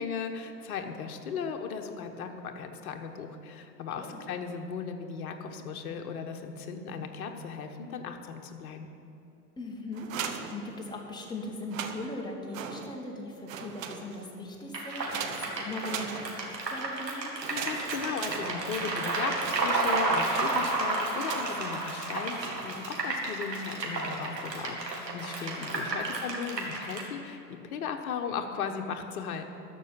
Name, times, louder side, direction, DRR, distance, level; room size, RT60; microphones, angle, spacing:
voice 1, 0.0-8.9 17.5-29.4, left 6 dB, 60° left, 5 dB, 1.3 m, -37 dB
voice 2, 9.6-17.3 25.5-25.9, left 2 dB, 10° left, -1 dB, 1.8 m, -39 dB
sound 1, 9.9-11.2 11.6-13.2 13.4-14.4 15.1-16.7 17.4-19.0 19.4-21.8 22.4-23.1 23.8-24.1 24.5-25.0, right 7 dB, 50° right, 1.0 m, -41 dB
sound 2, 14.7-27.0, right 2 dB, 80° right, 2.3 m, -32 dB
13.5 x 5.9 x 9.3 m, 2.9 s
figure-of-eight pair, 95°, 50 cm